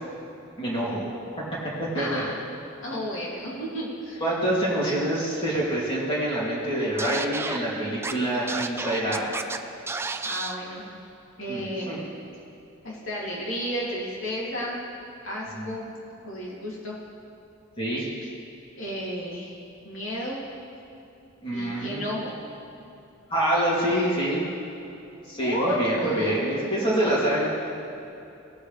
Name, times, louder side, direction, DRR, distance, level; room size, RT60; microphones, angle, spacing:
voice 1, 0.6-1.0 1.8-2.2 4.2-9.3 11.5-12.0 15.5-15.7 17.8-18.1 21.4-22.0 23.3-24.4 25.3-27.5, right 1 dB, 25° left, -7 dB, 2.9 m, -26 dB
voice 2, 1.9-2.3 2.8-4.2 10.2-10.9 11.4-12.0 12.8-14.8 15.2-15.9 16.2-17.0 18.8-19.5 19.8-20.4 21.5-22.3 25.4-26.4, equal, 70° left, -5 dB, 2.9 m, -32 dB
Scratching (performance technique), 7.0-7.6 8.0-8.1 8.5-9.6 9.9-10.6, right 4 dB, 10° right, 0.3 m, -31 dB
18.0 x 7.9 x 3.4 m, 2.9 s
head